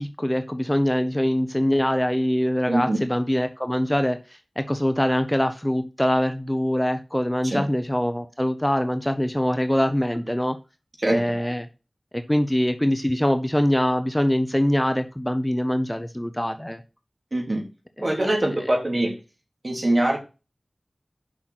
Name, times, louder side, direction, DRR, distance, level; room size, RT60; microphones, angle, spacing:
voice 1, 0.0-4.2 4.6-10.6 11.1-11.7 12.1-16.8 18.0-18.1, equal, 10° left, 9 dB, 0.8 m, -23 dB
voice 2, 2.7-3.0 7.4-7.6 11.0-11.2 17.3-17.7 18.0-19.2 19.6-20.2, right 1 dB, 50° right, 0 dB, 3.2 m, -23 dB
6.3 x 6.0 x 5.9 m, 0.30 s
wide cardioid pair, 65°, 0 cm